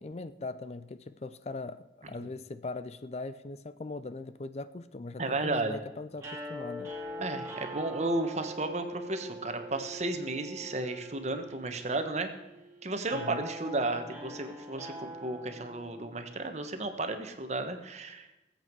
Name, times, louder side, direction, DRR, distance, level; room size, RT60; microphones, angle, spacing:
voice 1, 0.0-6.9 13.1-13.5, left 3 dB, 35° left, 13 dB, 0.4 m, -40 dB
voice 2, 5.2-5.8 7.2-12.3 12.8-14.9 15.2-18.3, right 2 dB, 40° right, 7 dB, 1.3 m, -33 dB
sound 1, 6.2-16.4, equal, 15° right, 2.8 m, -43 dB
20.0 x 8.0 x 4.7 m, 1.0 s
head